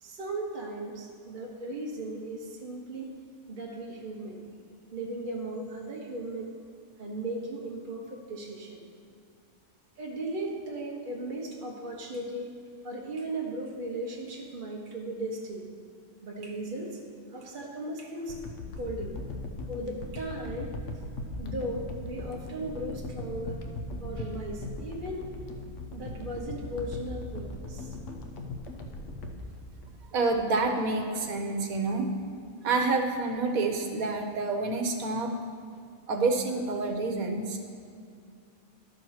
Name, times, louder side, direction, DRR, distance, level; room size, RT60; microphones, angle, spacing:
voice 1, 0.0-3.1 3.5-4.4 4.9-6.6 7.0-8.8 10.0-12.5 12.8-15.7 16.2-17.0 17.3-18.4 18.7-19.1 19.7-20.9 21.4-23.6 24.0-25.3 25.9-28.0, right 1 dB, 40° right, -2 dB, 1.0 m, -37 dB
sound 1, 18.3-30.5 31.0-31.1, left 2 dB, 65° left, 1.1 m, -39 dB
voice 2, 30.1-32.1 32.6-35.4 36.1-37.6, right 3 dB, 80° right, 3 dB, 1.3 m, -28 dB
11.5 x 4.5 x 6.4 m, 2.4 s
omnidirectional pair, 1.5 m